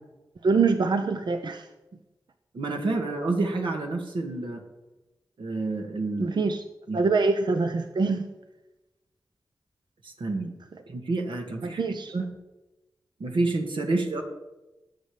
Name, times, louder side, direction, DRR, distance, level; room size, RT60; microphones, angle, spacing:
voice 1, 0.4-1.7 6.2-6.6 6.9-8.3 11.6-12.1, right 4 dB, 65° right, 7 dB, 0.9 m, -24 dB
voice 2, 2.5-4.6 5.4-6.3 6.9-7.0 10.0-10.5 10.9-12.3 13.2-14.2, right 3 dB, 80° right, 2 dB, 2.2 m, -29 dB
19.0 x 6.8 x 5.1 m, 1.0 s
cardioid pair, 55°, 8 cm